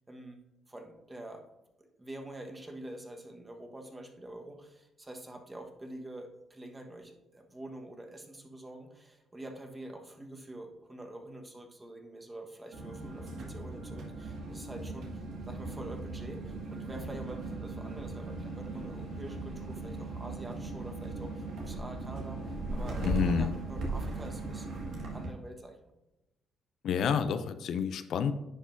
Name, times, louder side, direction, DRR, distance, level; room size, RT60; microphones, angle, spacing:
voice 1, 0.1-0.4 0.7-1.4 1.8-25.8, right 1 dB, 20° right, 4 dB, 1.2 m, -46 dB
sound 1, 12.7-25.3, right 3 dB, 75° right, 1.7 m, -38 dB
voice 2, 23.0-23.5 26.8-28.3, left 7 dB, 70° left, 10 dB, 0.4 m, -29 dB
9.8 x 5.4 x 2.6 m, 0.93 s
cardioid pair, 90°, 0 cm